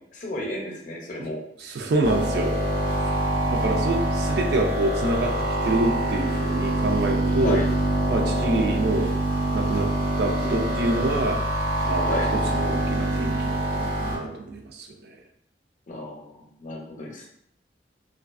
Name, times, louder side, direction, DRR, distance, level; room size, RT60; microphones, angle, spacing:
voice 1, 0.1-1.4 7.4-7.7 12.0-12.3 15.9-17.3, left 1 dB, 45° left, 0 dB, 0.5 m, -32 dB
voice 2, 1.6-2.5 3.0-3.1 3.5-5.3 5.6-7.6 8.1-9.1 9.5-9.9 10.2-11.4 11.9-15.2, right 2 dB, 60° right, 3 dB, 0.4 m, -26 dB
sound 1, 2.0-14.2, right 1 dB, 80° right, 1.3 m, -25 dB
2.4 x 2.3 x 2.3 m, 0.70 s
head